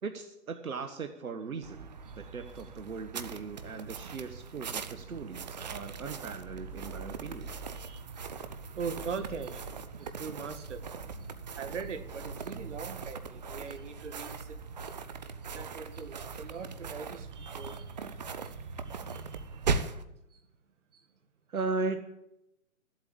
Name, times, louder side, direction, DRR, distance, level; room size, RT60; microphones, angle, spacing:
voice 1, 0.0-7.5 21.5-22.0, right 4 dB, 75° right, 1.5 m, -38 dB
sound 1, 1.6-20.0, right 5 dB, 30° right, 0.7 m, -40 dB
voice 2, 7.7-8.3 8.6-9.7 10.0-10.9 11.6-14.9 15.4-18.6 18.8-19.9 20.3-20.4 20.9-21.1, right 5 dB, 55° right, 1.9 m, -42 dB
13.5 x 8.3 x 8.6 m
hypercardioid pair, 155°, 42 cm